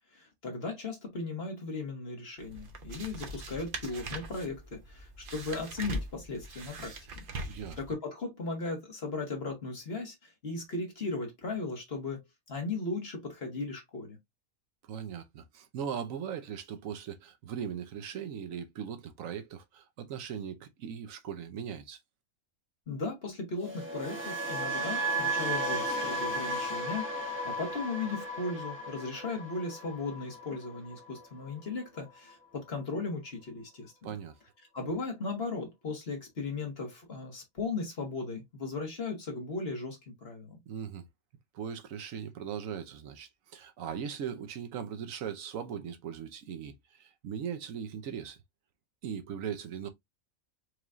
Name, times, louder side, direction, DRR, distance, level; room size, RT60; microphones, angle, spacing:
voice 1, 0.1-7.1 7.8-14.2 22.9-34.1 34.7-40.6, left 3 dB, 45° left, 1.7 m, -37 dB
sound 1, 2.4-7.9, right 1 dB, 45° right, 0.8 m, -41 dB
voice 2, 7.4-7.8 14.8-22.0 34.0-34.3 40.7-41.1 41.5-48.4 49.0-49.9, right 8 dB, 75° right, 1.1 m, -39 dB
sound 2, 23.6-31.7 32.0-32.3, right 1 dB, 10° right, 0.8 m, -35 dB
4.6 x 3.0 x 2.5 m
omnidirectional pair, 1.4 m